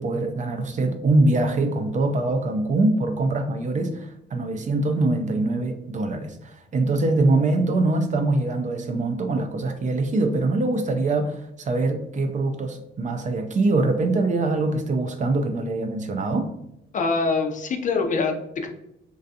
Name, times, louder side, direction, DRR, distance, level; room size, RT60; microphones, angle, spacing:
voice 1, 0.0-16.5, right 2 dB, 40° right, 6 dB, 0.4 m, -23 dB
voice 2, 16.9-18.7, left 4 dB, 40° left, 4 dB, 0.4 m, -24 dB
2.5 x 2.3 x 2.6 m, 0.82 s
cardioid pair, 90°, 20 cm